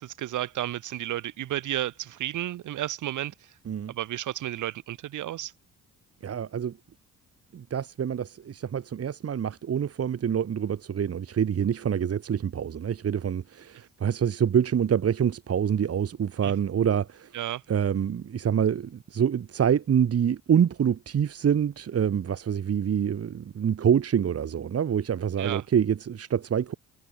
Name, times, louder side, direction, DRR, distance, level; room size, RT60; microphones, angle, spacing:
voice 1, 0.0-3.3 3.9-5.5 16.4-16.5 17.3-17.6 25.4-25.6, right 13 dB, 80° right, 6.0 m, -32 dB
voice 2, 6.2-6.8 7.5-17.3 17.7-26.7, right 8 dB, 50° right, 2.9 m, -26 dB
cardioid pair, 90°, 30 cm